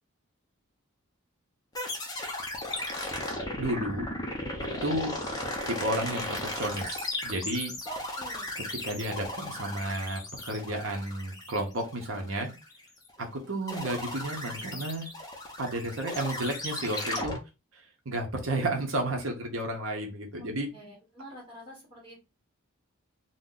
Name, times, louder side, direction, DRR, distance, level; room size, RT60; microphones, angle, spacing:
sound 1, 1.8-13.2 13.7-17.4, left 1 dB, 15° left, 0.5 m, -36 dB
voice 1, 3.6-4.1 4.8-5.1 5.7-7.7 8.8-12.5 13.2-15.1 15.6-17.4 17.7-20.7, right 1 dB, 65° right, 2 dB, 0.7 m, -32 dB
voice 2, 7.8-8.5 16.2-16.3 20.4-22.2, right 1 dB, 20° right, -7 dB, 1.4 m, -47 dB
2.6 x 2.1 x 3.7 m, 0.27 s
head